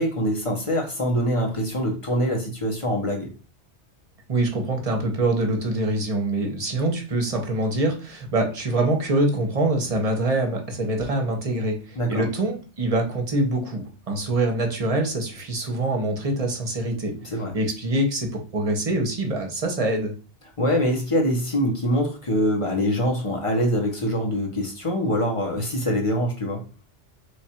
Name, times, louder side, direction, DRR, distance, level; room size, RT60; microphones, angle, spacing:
voice 1, 0.0-3.3 11.9-12.2 17.2-17.6 20.6-26.6, equal, 30° left, 0 dB, 0.9 m, -24 dB
voice 2, 4.3-17.1 17.5-20.1, right 2 dB, 35° right, 3 dB, 0.8 m, -24 dB
3.3 x 2.5 x 4.3 m, 0.35 s
omnidirectional pair, 1.2 m